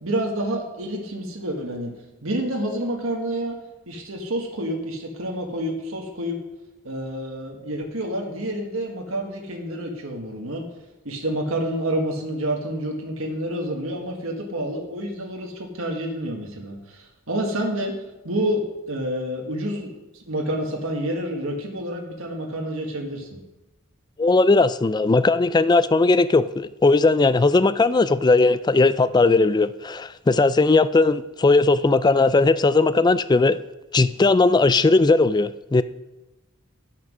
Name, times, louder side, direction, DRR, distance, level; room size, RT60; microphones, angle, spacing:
voice 1, 0.0-1.9 2.2-3.5 3.9-6.4 6.8-10.6 11.1-17.9 18.2-23.4, right 1 dB, 70° right, 1 dB, 1.7 m, -28 dB
voice 2, 24.2-33.6 33.9-35.8, left 3 dB, 20° left, 15 dB, 0.3 m, -18 dB
11.5 x 6.1 x 6.2 m, 1.0 s
head